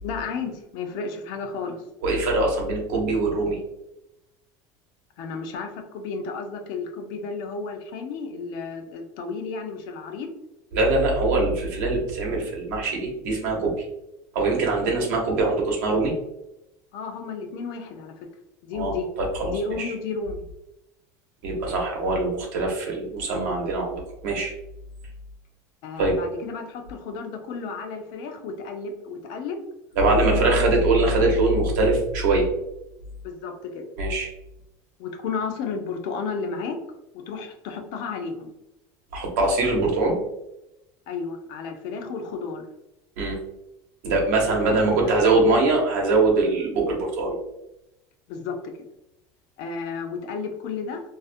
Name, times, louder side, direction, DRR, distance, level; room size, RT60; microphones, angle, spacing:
voice 1, 0.0-1.8 5.2-10.3 16.9-18.3 18.6-19.1 19.5-20.4 25.8-29.6 30.3-30.8 33.2-33.8 35.0-36.8 37.1-38.5 41.1-42.7 44.5-45.4 48.3-48.6 49.6-51.0, left 4 dB, 50° left, 5 dB, 0.4 m, -33 dB
voice 2, 2.0-3.6 10.7-13.8 14.3-16.1 18.7-19.9 21.4-24.5 26.0-26.2 30.0-32.5 34.0-34.3 39.1-40.2 43.2-43.4 44.0-47.4, right 2 dB, 80° right, -1 dB, 0.8 m, -22 dB
2.4 x 2.1 x 2.5 m, 0.88 s
cardioid pair, 170°, 9 cm